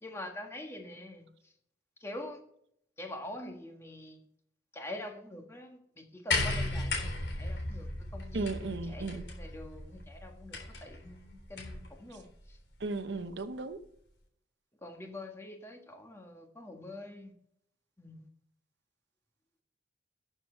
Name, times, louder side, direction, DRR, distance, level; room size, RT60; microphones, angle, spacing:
voice 1, 0.0-1.5 2.0-2.4 3.0-4.3 4.7-12.6 14.8-17.3 18.0-18.3, left 1 dB, 15° left, 1.5 m, -45 dB
sound 1, 6.3-11.9 13.0-13.1, left 2 dB, 90° left, 3.7 m, -36 dB
voice 2, 8.3-9.2 12.8-13.8, right 3 dB, 80° right, 0.8 m, -35 dB
13.0 x 7.1 x 4.4 m
head